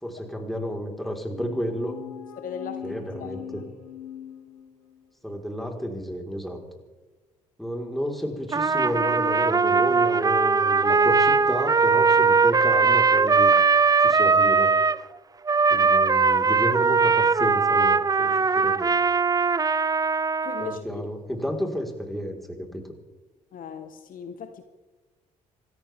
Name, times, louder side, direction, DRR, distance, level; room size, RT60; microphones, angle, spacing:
voice 1, 0.0-2.0 2.8-3.6 5.2-6.6 7.6-13.5 14.0-14.8 15.7-18.9 20.6-22.8, equal, ahead, 1 dB, 4.3 m, -31 dB
sound 1, 1.3-5.1, left 10 dB, 80° left, 2.0 m, -41 dB
voice 2, 2.4-3.6 15.9-16.1 20.4-20.8 23.5-24.6, left 7 dB, 55° left, 9 dB, 1.3 m, -38 dB
Trumpet, 8.5-15.0 15.5-20.8, right 5 dB, 20° right, 0.5 m, -20 dB
27.5 x 14.0 x 3.6 m, 1.2 s
hypercardioid pair, 45°, 17 cm